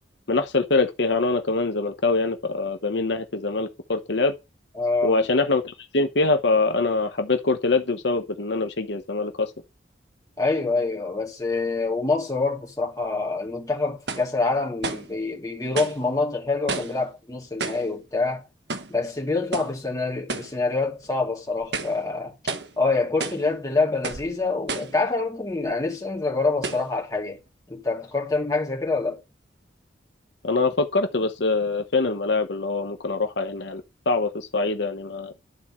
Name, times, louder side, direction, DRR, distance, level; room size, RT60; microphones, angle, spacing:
voice 1, 0.3-4.3 5.0-9.5 30.4-35.3, left 3 dB, 70° left, 0.9 m, -24 dB
voice 2, 4.8-5.3 10.4-18.5 18.9-22.3 22.8-27.4 27.7-29.2, left 3 dB, 20° left, 2.5 m, -26 dB
sound 1, 13.0-13.1 14.1-14.3 14.8-15.1 15.8-16.0 16.7-17.0 17.6-17.9 18.7-19.0 19.5-19.8 20.3-20.6 21.0-21.1 21.6-22.0 22.5-22.7 23.2-23.5 24.0-24.3 24.7-25.0 25.7-25.8 26.6-26.9, right 3 dB, 65° right, 1.3 m, -31 dB
12.0 x 4.4 x 7.4 m
head